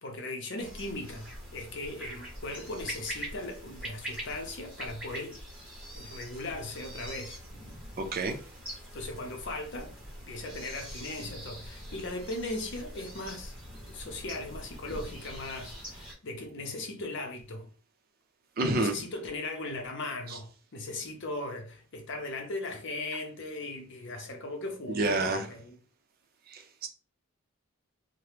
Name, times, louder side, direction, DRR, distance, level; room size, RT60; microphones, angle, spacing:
voice 1, 0.0-5.4 5.9-7.4 8.9-9.9 10.2-13.5 13.9-17.7 18.7-25.8, left 2 dB, 60° left, 0.7 m, -38 dB
sound 1, 0.6-16.1, equal, 5° right, 0.9 m, -43 dB
voice 2, 8.0-8.4 18.6-18.9 20.3-20.4 24.9-25.4 26.5-26.9, right 2 dB, 45° right, 0.5 m, -29 dB
2.8 x 2.1 x 3.2 m
head